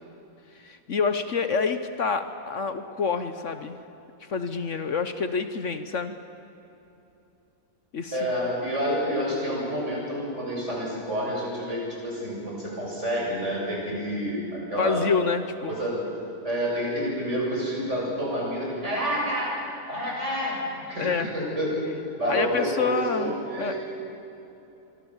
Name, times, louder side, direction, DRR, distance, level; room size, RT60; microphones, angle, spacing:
voice 1, 0.6-3.8 4.3-6.2 7.9-8.2 14.8-15.8 21.0-21.3 22.3-23.7, left 5 dB, 55° left, 9 dB, 1.3 m, -27 dB
voice 2, 8.1-15.1 15.7-16.2 16.4-19.6 19.9-20.6 20.9-23.8, equal, 50° right, -3 dB, 7.8 m, -29 dB
25.5 x 25.0 x 7.3 m, 3.0 s
omnidirectional pair, 1.6 m